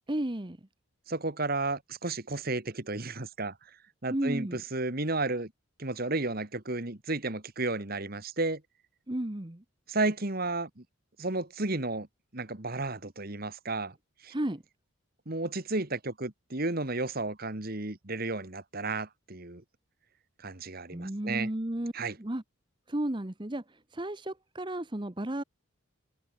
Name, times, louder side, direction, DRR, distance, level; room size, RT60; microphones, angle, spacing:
voice 1, 0.1-0.6 4.1-4.6 9.1-9.6 14.3-14.6 20.9-21.9 22.2-22.4 22.9-25.4, right 1 dB, 20° right, 1.0 m, -33 dB
voice 2, 1.1-3.5 4.0-5.5 5.8-8.6 9.9-10.8 11.2-12.1 12.3-13.9 14.2-14.3 15.3-19.6 20.4-21.5 21.9-22.2, right 2 dB, 45° right, 1.8 m, -32 dB
head